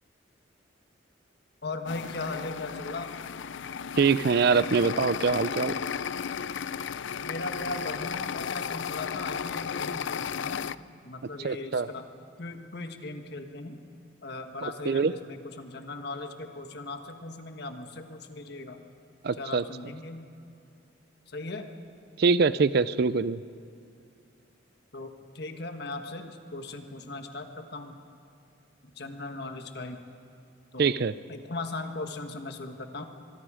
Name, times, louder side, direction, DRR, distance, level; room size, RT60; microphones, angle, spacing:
voice 1, 1.6-3.1 7.2-10.6 11.0-12.1 12.4-13.8 14.2-18.9 19.4-20.3 21.3-21.7 24.9-28.0 28.9-30.0 30.7-30.9 31.3-33.1, left 2 dB, 55° left, 6 dB, 1.5 m, -38 dB
sound 1, 1.9-10.8, left 7 dB, 70° left, 0.5 m, -34 dB
voice 2, 4.0-5.8 11.4-11.9 14.9-15.1 19.2-19.6 22.2-23.4 30.8-31.1, right 5 dB, 55° right, 16 dB, 0.4 m, -24 dB
24.0 x 23.0 x 5.0 m, 2.6 s
head